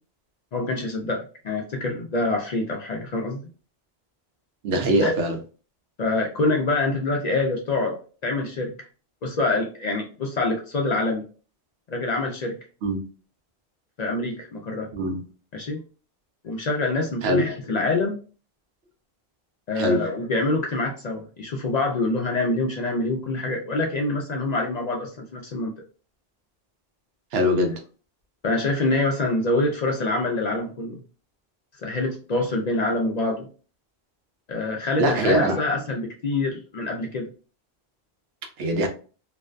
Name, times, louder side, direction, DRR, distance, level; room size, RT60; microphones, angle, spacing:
voice 1, 0.5-3.4 5.0-5.1 6.0-8.7 9.2-11.2 11.9-12.5 14.0-14.9 15.5-15.8 16.4-18.2 19.7-25.7 28.4-31.0 31.8-33.5 34.5-37.3, left 2 dB, 55° left, 0.5 m, -25 dB
voice 2, 4.6-5.4 12.8-13.0 14.9-15.2 17.2-17.5 19.8-20.0 27.3-27.8 35.0-35.6 38.6-38.9, equal, 80° right, 0.8 m, -22 dB
2.5 x 2.1 x 2.3 m
omnidirectional pair, 1.0 m